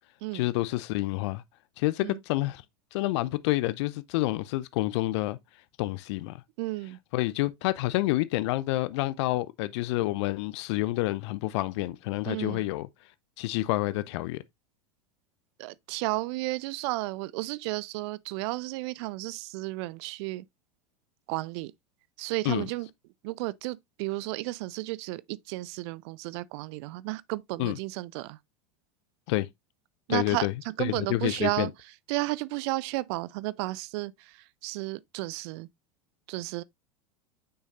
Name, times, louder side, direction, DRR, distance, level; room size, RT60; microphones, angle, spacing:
voice 1, 0.3-1.4 1.8-2.6 2.9-5.4 5.8-6.4 7.1-12.9 13.4-14.4 22.4-22.7 27.6-27.8 29.3-29.5 30.1-30.5 30.8-31.7, left 18 dB, 50° left, 0.5 m, -28 dB
voice 2, 6.6-7.0 12.3-12.6 15.6-20.4 21.3-21.7 22.2-22.9 23.2-28.4 30.1-31.7 32.1-34.3 34.6-35.7 36.3-36.6, right 20 dB, 45° right, 0.5 m, -33 dB
8.0 x 6.3 x 2.5 m
figure-of-eight pair, 85°, 19 cm